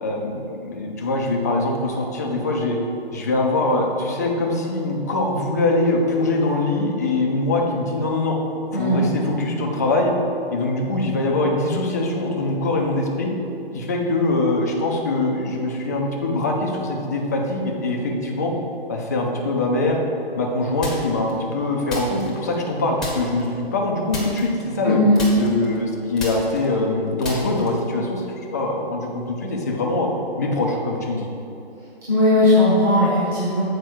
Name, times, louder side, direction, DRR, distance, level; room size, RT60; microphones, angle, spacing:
voice 1, 0.0-2.8 3.1-8.4 8.7-10.1 10.5-13.3 13.7-18.5 18.9-20.0 20.4-25.0 25.4-30.1 30.4-31.3, left 2 dB, 15° left, 0 dB, 0.4 m, -23 dB
voice 2, 8.7-9.0 24.8-25.2 32.1-33.6, left 1 dB, 20° right, -10 dB, 1.7 m, -17 dB
sound 1, 20.8-21.3 21.9-22.7 23.0-23.5 24.1-24.9 25.1-27.9, left 1 dB, ahead, 1.0 m, -32 dB
7.8 x 4.7 x 6.0 m, 2.9 s
hypercardioid pair, 150°, 31 cm